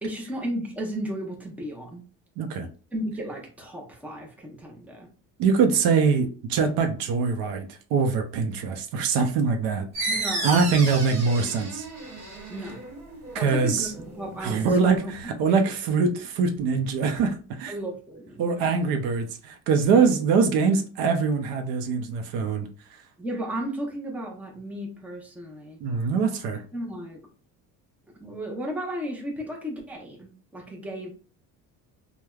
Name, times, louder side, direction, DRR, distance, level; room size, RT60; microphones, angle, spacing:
voice 1, 0.0-2.0 2.9-5.1 10.1-10.9 12.5-12.8 13.3-15.1 17.7-18.7 23.2-25.8 26.7-27.2 28.2-31.1, equal, 5° right, 0 dB, 0.6 m, -34 dB
voice 2, 2.4-2.7 5.4-10.1 10.4-11.9 13.3-13.9 14.4-17.7 18.4-22.7 25.8-26.6, right 5 dB, 75° right, 6 dB, 0.6 m, -23 dB
sound 1, 9.9-15.2, right 2 dB, 45° right, 1.1 m, -34 dB
3.2 x 2.2 x 2.2 m, 0.38 s
cardioid pair, 135°, 35 cm